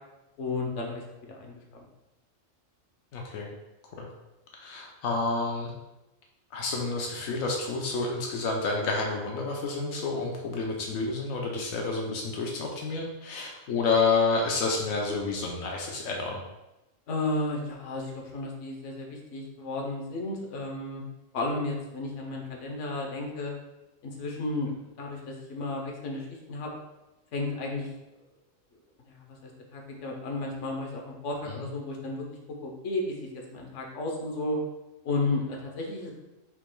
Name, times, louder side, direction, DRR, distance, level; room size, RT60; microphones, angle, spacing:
voice 1, 0.4-1.0 1.3-1.8 17.1-21.0 21.3-23.5 24.0-24.7 25.0-26.7 27.3-27.9 29.1-32.2 32.6-34.6 35.0-36.1, left 2 dB, 65° left, 0 dB, 1.2 m, -33 dB
voice 2, 3.1-3.5 4.0-4.1 4.5-5.7 6.5-16.4 31.5-31.7, left 3 dB, 85° left, 0 dB, 1.1 m, -29 dB
5.8 x 3.7 x 2.2 m, 0.99 s
omnidirectional pair, 1.4 m